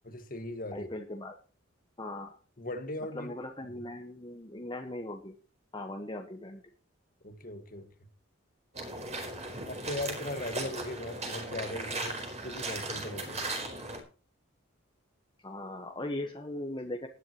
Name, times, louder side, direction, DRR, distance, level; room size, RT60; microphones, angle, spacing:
voice 1, 0.0-0.9 2.6-3.3 3.7-3.8 7.2-7.9 9.7-13.4, left 1 dB, 45° left, 1.9 m, -39 dB
voice 2, 0.7-1.4 2.0-2.4 3.1-5.4 5.7-6.6 15.4-17.1, left 1 dB, 25° left, 1.3 m, -39 dB
sound 1, 8.7-14.0, right 2 dB, 35° right, 4.4 m, -37 dB
19.5 x 11.0 x 3.1 m
head